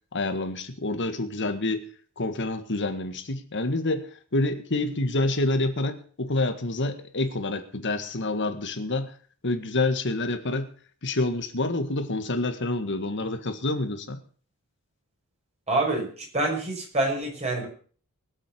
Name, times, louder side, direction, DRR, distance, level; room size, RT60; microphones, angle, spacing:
voice 1, 0.1-1.9 2.2-9.1 9.4-10.7 11.0-14.2, left 2 dB, 55° left, 8 dB, 1.7 m, -27 dB
voice 2, 15.7-17.7, right 2 dB, 30° right, 0 dB, 5.7 m, -26 dB
21.0 x 7.8 x 6.0 m, 0.43 s
head